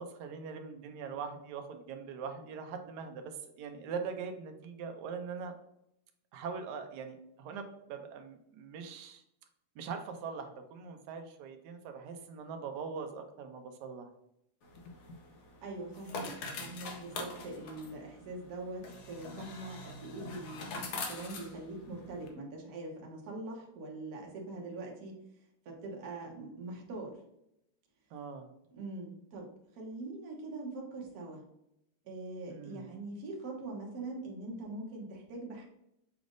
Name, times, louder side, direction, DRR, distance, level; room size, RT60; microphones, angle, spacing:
voice 1, 0.0-5.5 6.3-9.2 9.8-14.1 28.1-28.5 32.5-32.9, right 5 dB, 70° right, 6 dB, 1.0 m, -42 dB
sound 1, 14.6-22.3, left 3 dB, 65° left, 1.1 m, -44 dB
voice 2, 15.6-16.3 16.6-25.2 25.6-27.2 28.7-31.4 32.0-35.6, right 2 dB, 55° right, -1 dB, 1.3 m, -43 dB
6.0 x 3.3 x 2.5 m, 0.79 s
omnidirectional pair, 2.3 m